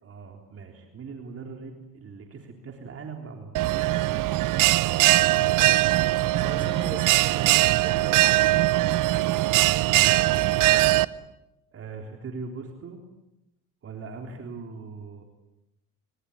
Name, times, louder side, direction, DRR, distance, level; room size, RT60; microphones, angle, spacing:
voice 1, 0.0-4.4 9.8-10.4 11.7-13.0 13.8-15.2, right 4 dB, 40° right, 3 dB, 3.8 m, -40 dB
Bell, 3.5-11.0, right 16 dB, 65° right, 0.9 m, -21 dB
voice 2, 6.3-8.3, right 2 dB, 15° right, 6 dB, 5.9 m, -40 dB
26.5 x 25.5 x 8.7 m, 0.91 s
cardioid pair, 115°, 35 cm